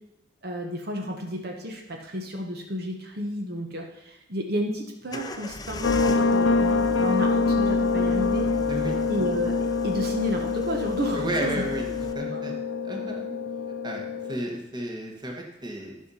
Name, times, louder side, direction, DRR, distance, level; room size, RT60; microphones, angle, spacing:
voice 1, 0.4-8.5 9.1-11.6 12.3-12.4, equal, 55° right, 2 dB, 1.2 m, -31 dB
sound 1, 5.1-12.1, left 2 dB, 20° left, 0.5 m, -39 dB
sound 2, 5.8-14.4, left 4 dB, 85° left, 0.7 m, -25 dB
voice 2, 8.7-9.0 11.1-11.9 12.1-12.5 12.8-13.3 13.8-14.0 14.3-16.0, right 1 dB, 20° right, 0 dB, 1.5 m, -32 dB
12.0 x 5.6 x 5.6 m, 0.92 s
head